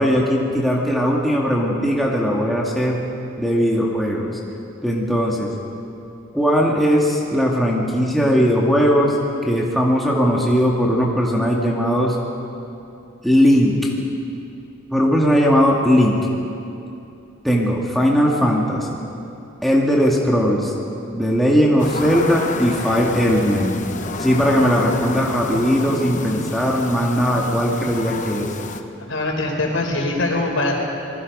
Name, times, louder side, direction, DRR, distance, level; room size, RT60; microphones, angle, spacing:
voice 1, 0.0-3.0 3.4-4.3 4.8-5.5 6.3-9.2 9.5-12.2 13.2-13.7 14.9-16.2 17.4-19.1 19.6-20.7 21.1-23.8 24.2-28.5, equal, ahead, -3 dB, 2.0 m, -18 dB
sound 1, 21.8-28.8, left 3 dB, 35° left, 1.0 m, -30 dB
voice 2, 29.1-30.8, left 2 dB, 70° left, 0 dB, 4.4 m, -22 dB
27.5 x 20.5 x 5.4 m, 2.7 s
head